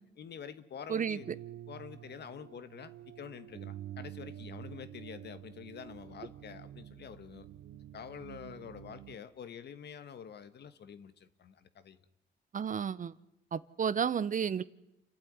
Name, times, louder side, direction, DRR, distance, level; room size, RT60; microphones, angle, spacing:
voice 1, 0.2-1.3 1.7-7.5 7.7-12.0, left 7 dB, 60° left, 12 dB, 1.5 m, -47 dB
sound 1, 1.2-9.2, right 12 dB, 85° right, 0.9 m, -48 dB
voice 2, 12.5-13.1 13.5-14.6, right 7 dB, 40° right, 17 dB, 0.8 m, -32 dB
28.5 x 12.0 x 9.5 m, 0.88 s
cardioid pair, 90°, 20 cm